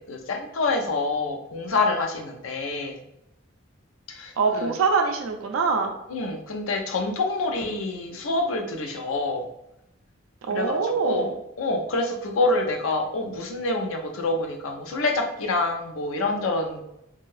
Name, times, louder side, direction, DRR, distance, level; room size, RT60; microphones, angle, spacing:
voice 1, 0.0-3.0 4.2-4.7 6.1-9.5 10.5-11.3 11.6-16.8, left 2 dB, 85° left, 4 dB, 0.5 m, -27 dB
voice 2, 4.4-5.9 10.5-11.3, right 4 dB, 80° right, 4 dB, 0.4 m, -24 dB
2.6 x 2.3 x 3.1 m, 0.82 s
head